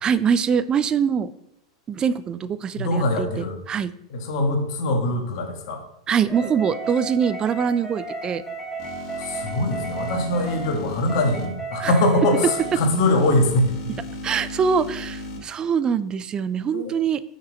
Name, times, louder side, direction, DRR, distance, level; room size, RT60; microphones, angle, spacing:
voice 1, 0.0-1.3 1.9-3.9 6.1-8.4 11.8-11.9 14.2-17.2, right 7 dB, 25° right, 15 dB, 0.4 m, -23 dB
voice 2, 2.8-3.6 4.1-5.8 9.2-13.8 16.7-16.9, left 1 dB, 60° left, 3 dB, 1.6 m, -22 dB
sound 1, 6.3-12.8, right 3 dB, 5° right, 2.9 m, -33 dB
sound 2, 8.8-11.5 12.5-15.4, left 2 dB, 40° left, 2.3 m, -36 dB
6.2 x 5.2 x 4.0 m, 0.78 s
hypercardioid pair, 95°, 3 cm